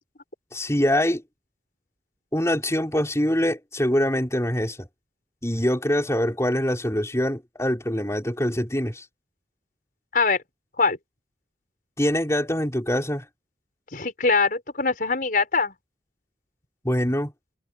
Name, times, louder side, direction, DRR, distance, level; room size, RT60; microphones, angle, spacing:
voice 1, 0.5-1.2 2.3-4.9 5.4-9.0 12.0-13.2 16.8-17.3, equal, 15° left, 5.0 m, -24 dB
voice 2, 13.9-15.7, left 4 dB, 50° left, 5.5 m, -22 dB
head